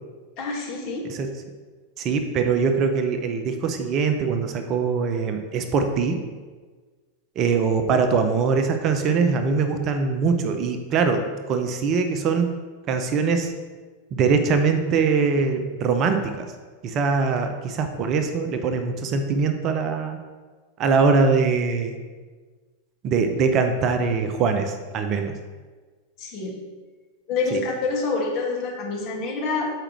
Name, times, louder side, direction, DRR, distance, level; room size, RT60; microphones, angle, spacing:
voice 1, 0.4-1.1 26.2-26.6 27.3-29.7, left 4 dB, 45° left, -3 dB, 1.9 m, -27 dB
voice 2, 2.0-6.2 7.4-12.5 12.9-13.5 14.1-16.5 16.8-20.2 20.8-21.9 23.0-25.3 27.5-27.6, right 5 dB, 40° right, 6 dB, 0.6 m, -22 dB
7.7 x 4.9 x 3.1 m, 1.4 s
figure-of-eight pair, 90°, 0 cm